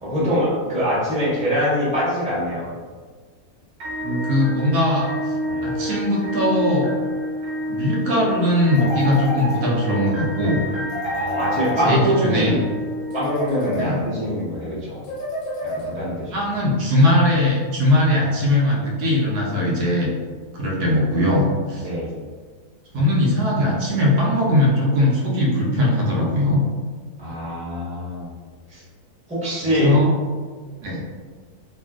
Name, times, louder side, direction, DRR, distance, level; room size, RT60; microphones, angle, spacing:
voice 1, 0.0-2.7 5.5-5.6 11.1-12.6 13.1-15.0 15.6-16.6 21.8-22.1 27.2-28.3 28.7-28.8 29.3-29.9, equal, 5° right, -10 dB, 0.8 m, -24 dB
sound 1, 3.8-13.8, equal, 55° right, 0.9 m, -29 dB
voice 2, 4.0-5.3 5.6-6.9 7.7-10.6 11.8-12.6 13.7-14.0 16.3-20.1 20.5-21.9 22.9-26.6 29.6-30.1 30.8-31.0, left 1 dB, 90° right, -3 dB, 1.2 m, -20 dB
sound 2, 8.8-10.0 10.9-12.4 13.1-14.3 15.0-16.2, equal, 70° left, 0.9 m, -29 dB
2.8 x 2.5 x 2.3 m, 1.5 s
omnidirectional pair, 1.6 m